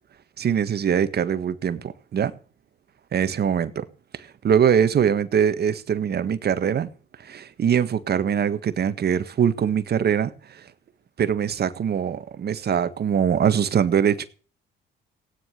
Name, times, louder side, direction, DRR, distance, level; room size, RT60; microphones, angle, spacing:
voice 1, 0.4-2.3 3.1-3.8 4.1-6.9 7.2-10.7 11.2-14.3, right 8 dB, 55° right, 1.6 m, -22 dB
16.5 x 9.8 x 6.6 m
cardioid pair, 90°, 20 cm